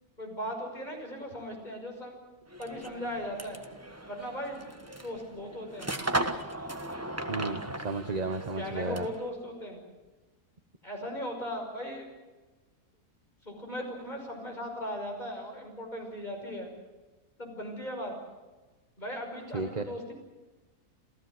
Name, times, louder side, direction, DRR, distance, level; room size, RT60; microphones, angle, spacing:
voice 1, 0.2-2.2 2.6-3.6 4.1-6.0 8.5-9.8 10.8-12.1 13.4-16.7 17.4-18.1 19.0-20.1, equal, 30° left, 1 dB, 5.9 m, -38 dB
sound 1, 2.5-9.3, right 1 dB, 10° right, 1.1 m, -37 dB
voice 2, 7.3-9.1 19.5-19.8, right 3 dB, 30° right, 7 dB, 1.1 m, -33 dB
28.0 x 16.0 x 7.9 m, 1.2 s
omnidirectional pair, 1.5 m